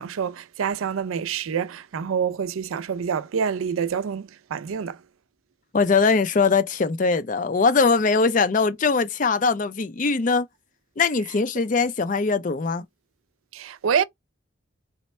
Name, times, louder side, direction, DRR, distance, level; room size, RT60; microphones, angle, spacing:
voice 1, 0.0-5.0 13.5-14.0, right 7 dB, 85° right, 0.4 m, -27 dB
voice 2, 5.7-10.5 11.0-12.8, left 4 dB, 40° left, 0.4 m, -21 dB
4.1 x 2.1 x 4.1 m
head